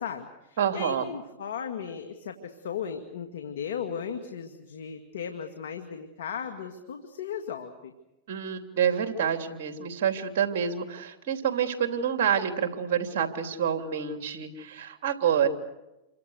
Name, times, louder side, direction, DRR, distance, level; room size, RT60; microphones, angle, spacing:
voice 1, 0.0-7.9 15.4-15.5, left 7 dB, 80° left, 6 dB, 2.3 m, -36 dB
voice 2, 0.6-1.1 8.3-15.5, right 8 dB, 65° right, 6 dB, 3.2 m, -27 dB
28.0 x 25.0 x 6.6 m, 0.96 s
hypercardioid pair, 110°, 0 cm